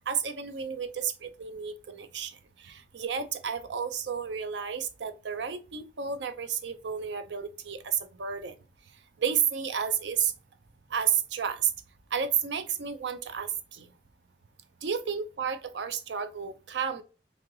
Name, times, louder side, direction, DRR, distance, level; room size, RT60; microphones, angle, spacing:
voice 1, 0.1-2.3 2.6-8.5 9.2-10.3 10.9-11.7 12.1-13.9 14.8-17.0, right 7 dB, 75° right, 0.5 m, -31 dB
3.2 x 2.7 x 3.8 m
head